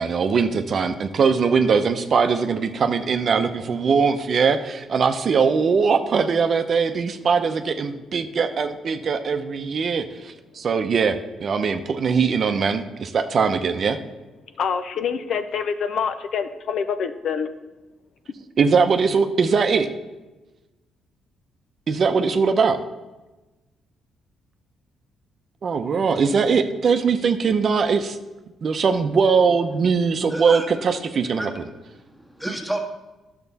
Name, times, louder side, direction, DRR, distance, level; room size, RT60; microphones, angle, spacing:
voice 1, 0.0-14.0 18.6-19.9 21.9-22.8 25.6-28.2 28.6-31.5, right 5 dB, 50° right, 8 dB, 0.7 m, -21 dB
voice 2, 14.6-17.5, left 6 dB, 65° left, 10 dB, 0.6 m, -26 dB
voice 3, 30.3-30.7 31.4-31.7 32.0-32.8, right 1 dB, 5° left, 2 dB, 1.6 m, -30 dB
10.5 x 6.7 x 4.1 m, 1.1 s
cardioid pair, 90°, 0 cm